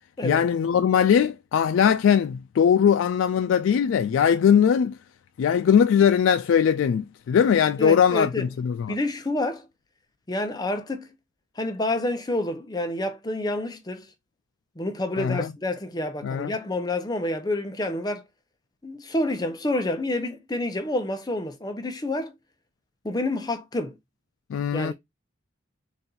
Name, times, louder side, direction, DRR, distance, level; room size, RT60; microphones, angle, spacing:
voice 1, 0.2-5.0 5.4-9.0 15.2-15.5 16.2-16.5 24.5-24.9, left 8 dB, 85° left, 0.3 m, -20 dB
voice 2, 7.8-8.5 8.9-9.7 10.3-11.1 11.6-14.1 14.8-18.2 18.8-22.3 23.0-24.0 24.7-24.9, left 1 dB, 20° left, 0.6 m, -28 dB
4.1 x 2.5 x 3.8 m
head